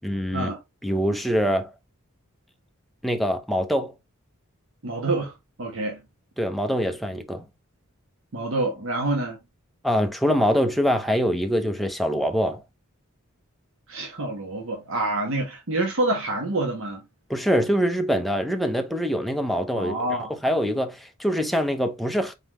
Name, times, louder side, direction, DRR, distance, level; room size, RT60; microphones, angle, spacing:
voice 1, 0.0-0.5 0.8-1.7 3.0-3.9 6.4-7.5 9.8-12.6 17.3-20.0 20.4-22.3, equal, ahead, 0.6 m, -24 dB
voice 2, 4.8-6.0 8.3-9.4 13.9-17.0 19.7-20.3, right 2 dB, 65° right, 1.1 m, -27 dB
4.0 x 3.7 x 3.0 m
head